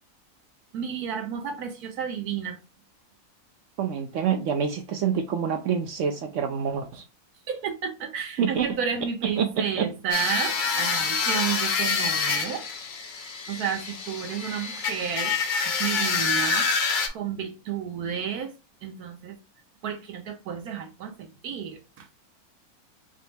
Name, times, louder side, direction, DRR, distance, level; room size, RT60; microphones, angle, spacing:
voice 1, 0.7-2.6 7.5-12.6 13.5-15.3 15.8-18.5 18.8-19.4 19.8-22.1, right 7 dB, 90° right, 1.3 m, -32 dB
voice 2, 3.8-7.0 8.4-8.7 9.2-9.9, right 7 dB, 65° right, 0.8 m, -27 dB
sound 1, 10.1-17.1, left 5 dB, 50° left, 0.5 m, -27 dB
5.4 x 2.0 x 3.3 m
omnidirectional pair, 1.6 m